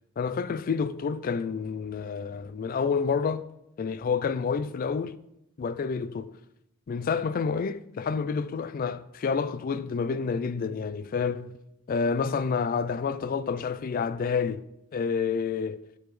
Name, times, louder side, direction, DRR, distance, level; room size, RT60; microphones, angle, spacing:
voice 1, 0.2-3.5 3.8-5.2 5.6-6.4 6.9-11.5 11.9-14.6 14.9-15.8, left 5 dB, 45° left, 0.3 m, -29 dB
7.5 x 7.1 x 3.2 m
head